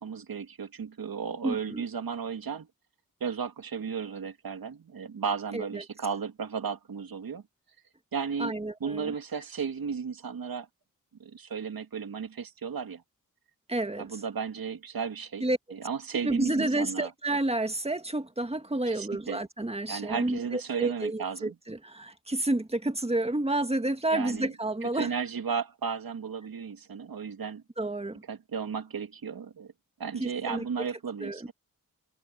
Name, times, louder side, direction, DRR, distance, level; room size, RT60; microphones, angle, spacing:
voice 1, 0.0-2.7 3.2-7.4 8.1-8.5 8.8-10.7 11.2-13.0 14.0-15.4 15.7-17.1 18.9-19.4 19.9-21.5 24.1-24.5 24.8-27.6 28.3-29.7 30.0-31.5, right 6 dB, 80° right, 2.3 m, -34 dB
voice 2, 1.4-1.8 5.5-5.8 8.4-9.1 13.7-14.2 15.4-15.6 16.2-25.1 27.8-28.2 30.2-30.6 31.2-31.5, right 2 dB, 15° right, 1.8 m, -30 dB
cardioid pair, 70°, 35 cm